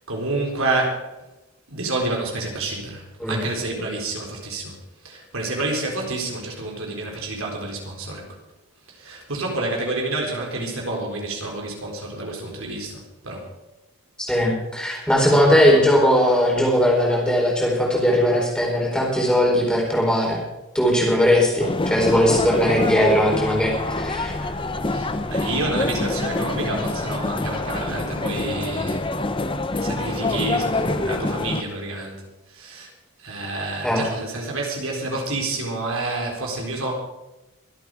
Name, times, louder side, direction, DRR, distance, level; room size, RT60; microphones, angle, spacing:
voice 1, 0.1-1.1 1.7-4.8 5.0-8.3 8.9-13.5 15.5-15.9 24.9-29.1 29.8-32.9 33.2-36.9, right 2 dB, 65° right, 0 dB, 4.2 m, -29 dB
voice 2, 14.3-20.4 20.7-24.3 33.8-34.0, equal, 5° left, -2 dB, 4.5 m, -19 dB
sound 1, 21.6-31.6, left 2 dB, 25° left, 0.7 m, -26 dB
24.5 x 8.5 x 5.0 m, 1.0 s
head